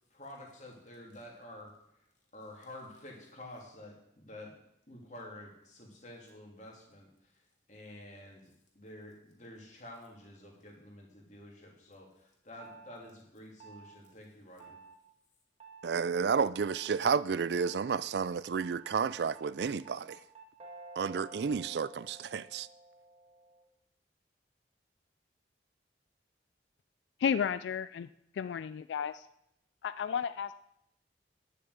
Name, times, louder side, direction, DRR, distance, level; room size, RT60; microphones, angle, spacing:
voice 1, 0.1-1.7 2.3-4.5 4.9-7.4 7.7-14.8, left 1 dB, 40° left, 3.0 m, -50 dB
sound 1, 12.6-13.0 13.6-14.0 14.6-15.0 15.6-15.9 16.6-17.0 17.6-18.0 18.6-23.7, right 3 dB, 35° right, 1.6 m, -52 dB
voice 2, 15.8-20.2 21.0-22.7, right 6 dB, 70° right, 0.4 m, -31 dB
voice 3, 27.2-28.1 28.3-29.3 29.8-30.5, left 7 dB, 80° left, 0.3 m, -32 dB
10.5 x 6.8 x 8.0 m
head